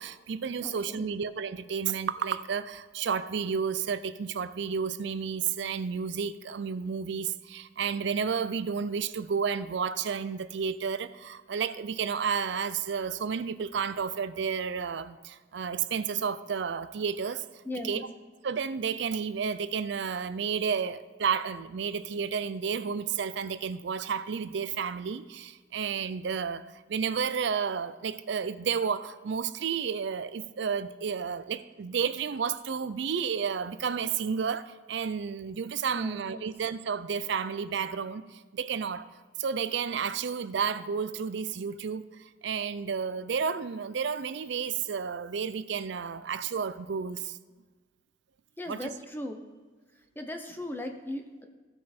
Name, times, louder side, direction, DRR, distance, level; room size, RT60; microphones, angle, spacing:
voice 1, 0.0-17.4 17.8-18.1 18.4-39.1 39.4-47.4 48.7-48.9, right 6 dB, 60° right, 14 dB, 0.4 m, -31 dB
voice 2, 0.6-1.1 17.7-18.0 35.9-36.4 48.6-49.4 50.2-51.5, left 1 dB, 10° left, 4 dB, 0.6 m, -38 dB
15.5 x 5.3 x 4.3 m, 1.4 s
head